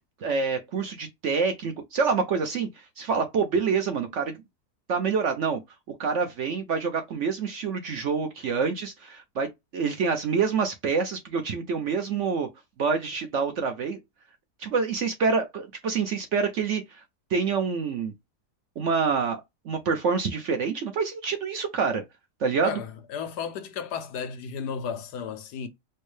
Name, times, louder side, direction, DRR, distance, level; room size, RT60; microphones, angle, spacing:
voice 1, 0.2-4.3 4.9-5.6 6.0-12.5 12.8-14.0 14.6-17.0 17.3-18.1 18.8-22.0 22.4-22.8, right 5 dB, 60° right, 0.8 m, -27 dB
voice 2, 22.6-25.7, left 6 dB, 80° left, 1.3 m, -34 dB
4.4 x 2.1 x 3.2 m
omnidirectional pair, 1.7 m